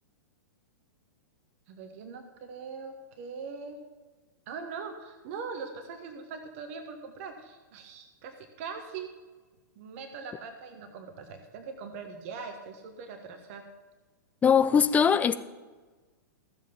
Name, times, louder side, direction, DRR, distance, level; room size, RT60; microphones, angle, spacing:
voice 1, 1.7-3.8 4.5-9.1 9.8-13.6, right 5 dB, 45° right, 5 dB, 1.4 m, -41 dB
voice 2, 14.4-15.3, left 7 dB, 15° left, 13 dB, 0.5 m, -21 dB
14.5 x 7.5 x 5.8 m, 1.3 s
figure-of-eight pair, 105°, 10 cm